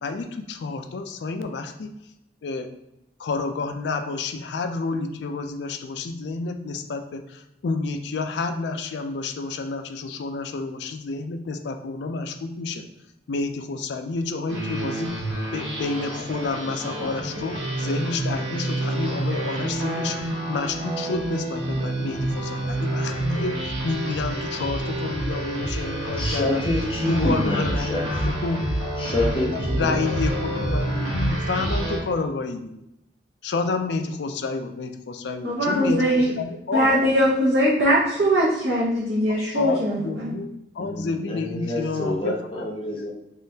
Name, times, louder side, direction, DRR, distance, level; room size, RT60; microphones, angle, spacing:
voice 1, 0.0-1.9 2.4-2.7 3.2-12.8 13.3-15.1 15.5-26.6 27.1-28.7 29.4-32.8 33.4-36.9 39.5-42.6 42.9-43.0, left 3 dB, 75° left, 6 dB, 0.4 m, -29 dB
sound 1, 14.5-32.0, right 1 dB, 90° right, 1.2 m, -28 dB
voice 2, 26.2-28.0 29.0-30.0 40.8-43.1, left 1 dB, 30° left, -2 dB, 0.6 m, -27 dB
voice 3, 35.4-36.3 36.7-40.3, equal, 60° right, -7 dB, 0.9 m, -21 dB
3.7 x 3.1 x 2.7 m, 0.82 s
head